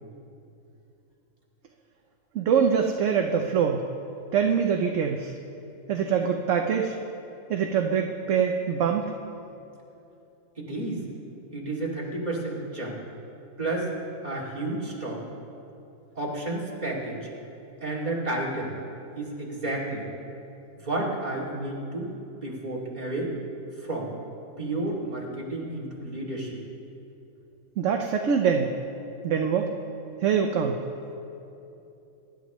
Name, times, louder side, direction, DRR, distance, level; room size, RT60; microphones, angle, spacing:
voice 1, 2.3-3.8 4.3-5.3 5.9-7.0 7.5-9.1 27.8-28.7 29.2-29.7 30.2-30.8, right 7 dB, 65° right, 3 dB, 1.1 m, -24 dB
voice 2, 10.6-11.0 11.5-13.0 13.6-13.9 14.2-15.2 16.2-17.3 17.8-18.7 19.2-20.1 20.8-22.1 22.4-23.3 23.8-24.1 24.6-26.6, right 2 dB, 30° right, -5 dB, 2.6 m, -31 dB
23.5 x 11.5 x 3.1 m, 2.8 s
omnidirectional pair, 1.4 m